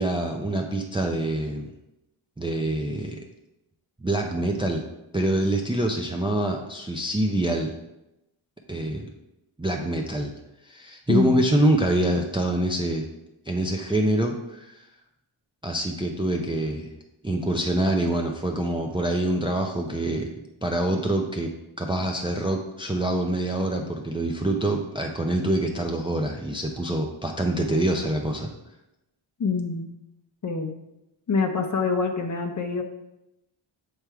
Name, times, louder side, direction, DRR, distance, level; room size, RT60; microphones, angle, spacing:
voice 1, 0.0-1.7 2.4-3.2 4.0-4.8 5.1-7.7 8.7-9.1 9.6-10.3 10.6-13.1 13.5-14.7 15.6-16.9 17.2-20.3 20.6-21.5 21.8-28.5, right 1 dB, 10° right, 2 dB, 0.4 m, -25 dB
voice 2, 11.1-11.4 29.4-29.8 30.4-30.7 31.3-32.8, left 4 dB, 35° left, 5 dB, 0.7 m, -25 dB
7.5 x 3.4 x 4.6 m, 0.90 s
wide cardioid pair, 145°, 49 cm